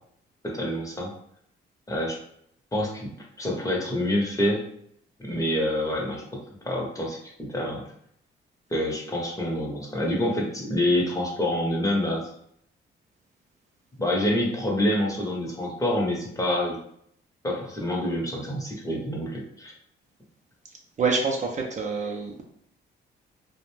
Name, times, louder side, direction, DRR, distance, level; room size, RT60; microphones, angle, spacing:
voice 1, 0.4-1.1 1.9-2.2 2.7-3.1 3.4-4.6 5.2-7.8 8.7-12.3 14.0-16.8 17.4-19.7, left 1 dB, 15° left, -2 dB, 0.7 m, -27 dB
voice 2, 21.0-22.4, right 4 dB, 35° right, 0 dB, 0.4 m, -26 dB
2.4 x 2.1 x 3.1 m, 0.69 s
cardioid pair, 90°, 20 cm